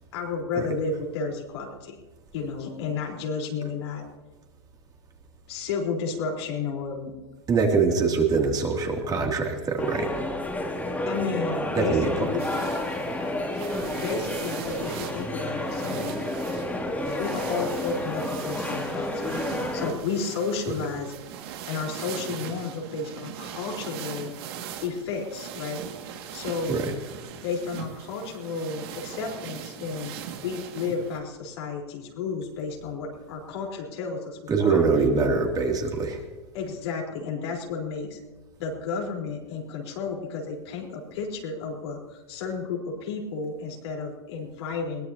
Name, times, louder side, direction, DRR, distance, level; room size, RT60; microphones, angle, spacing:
voice 1, 0.1-2.0 2.3-4.0 5.5-7.1 8.0-8.1 11.1-12.7 13.8-16.1 17.2-19.4 19.7-21.1 21.7-24.3 24.8-25.9 26.3-26.9 27.4-30.1 30.4-34.8 36.5-38.2 38.6-45.1, left 5 dB, 65° left, 0 dB, 4.2 m, -32 dB
voice 2, 7.5-10.1 11.8-12.1 26.7-26.8 34.5-36.2, right 4 dB, 25° right, 1 dB, 2.7 m, -23 dB
sound 1, 9.8-19.9, left 1 dB, 10° left, 2.8 m, -30 dB
sound 2, 12.4-31.2, right 8 dB, 60° right, 2.1 m, -40 dB
21.5 x 17.5 x 2.9 m, 1.2 s
hypercardioid pair, 110°, 15 cm